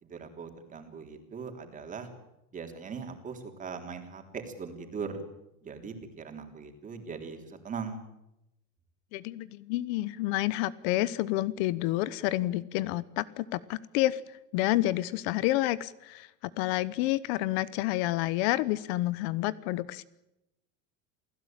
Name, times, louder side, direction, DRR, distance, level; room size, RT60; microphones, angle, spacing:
voice 1, 0.0-2.1 2.5-5.2 5.6-8.0, right 5 dB, 20° right, 4 dB, 3.5 m, -40 dB
voice 2, 9.1-14.2 14.5-16.3 16.6-20.0, left 16 dB, 60° left, 18 dB, 1.0 m, -29 dB
28.5 x 16.5 x 9.0 m, 0.89 s
supercardioid pair, 155°, 36 cm